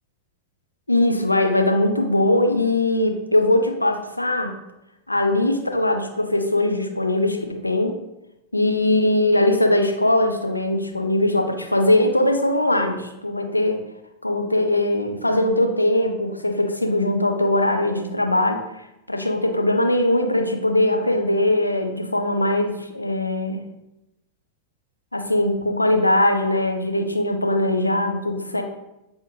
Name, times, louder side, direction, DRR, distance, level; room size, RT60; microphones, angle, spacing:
voice 1, 0.9-4.6 5.1-8.0 8.5-13.8 14.2-18.6 19.1-23.6 25.1-28.6, left 1 dB, 85° left, 5 dB, 0.4 m, -21 dB
3.4 x 3.1 x 2.6 m, 0.90 s
figure-of-eight pair, 90°, 0 cm